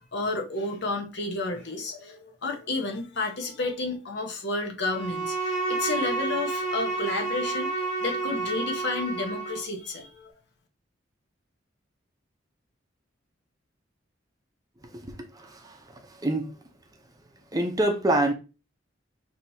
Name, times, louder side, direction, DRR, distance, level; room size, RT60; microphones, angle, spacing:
voice 1, 0.0-10.3, left 3 dB, 65° left, 1.0 m, -31 dB
Bowed string instrument, 4.9-9.7, right 3 dB, 30° left, 2.2 m, -30 dB
voice 2, 14.8-16.5 17.5-18.3, right 1 dB, 20° right, 0.7 m, -27 dB
5.9 x 2.9 x 2.7 m
head